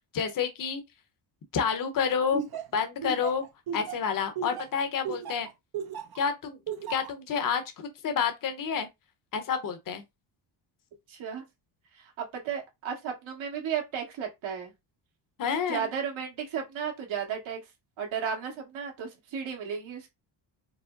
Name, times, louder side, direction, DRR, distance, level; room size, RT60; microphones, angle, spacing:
voice 1, 0.1-0.8 1.5-2.4 2.7-3.4 3.7-5.5 6.2-6.6 6.9-8.9 9.3-10.0 15.4-15.9, left 6 dB, 40° left, 0.9 m, -29 dB
Laughter, 2.3-6.2 6.7-7.1, right 6 dB, 50° right, 0.8 m, -35 dB
voice 2, 11.1-11.4 11.9-14.7 15.7-17.6 18.0-20.1, right 7 dB, 70° right, 1.8 m, -34 dB
4.8 x 2.1 x 3.8 m
cardioid pair, 135°, 49 cm